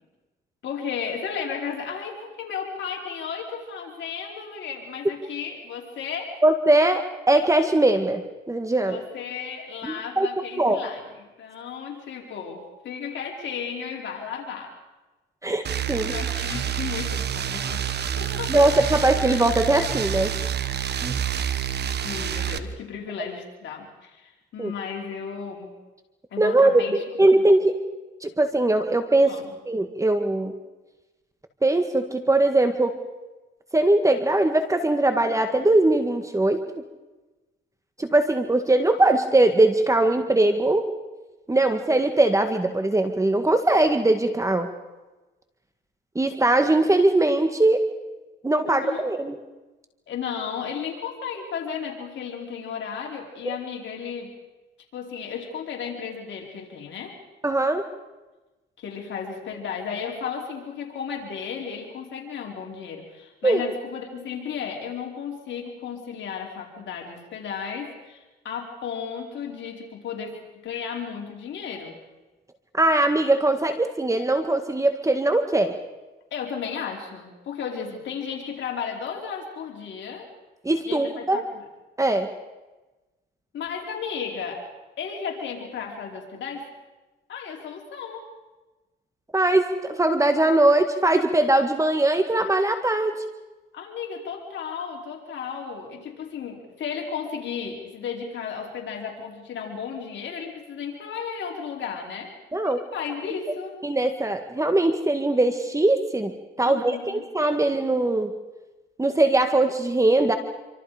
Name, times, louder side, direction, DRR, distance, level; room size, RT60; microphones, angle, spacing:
voice 1, 0.6-6.4 8.9-14.7 16.1-17.8 18.2-18.7 22.0-25.7 26.3-27.0 27.3-27.5 29.2-29.5 48.7-49.1 50.1-54.3 54.9-57.2 58.8-71.9 76.3-80.3 80.8-81.6 83.5-84.7 85.0-86.7 87.3-88.3 93.7-102.3 102.6-103.8 106.6-107.3, left 6 dB, 70° left, 0 dB, 4.8 m, -34 dB
voice 2, 6.4-8.2 8.5-9.0 9.8-10.3 10.6-10.8 15.4-16.1 18.5-20.3 21.0-21.1 24.6-24.7 26.4-26.8 27.2-27.7 28.2-29.4 29.6-30.5 31.6-32.9 33.7-36.6 38.0-40.9 41.5-44.7 46.1-47.8 48.4-49.4 53.4-53.6 57.4-57.9 63.4-63.6 72.7-75.7 80.6-81.4 82.0-82.3 89.3-93.2 102.5-102.8 103.8-108.3 109.0-110.4, right 2 dB, 15° right, 7 dB, 1.8 m, -21 dB
sound 1, 15.6-22.6, right 9 dB, 60° right, 1.4 m, -28 dB
27.5 x 25.5 x 5.1 m, 1.1 s
cardioid pair, 90°, 20 cm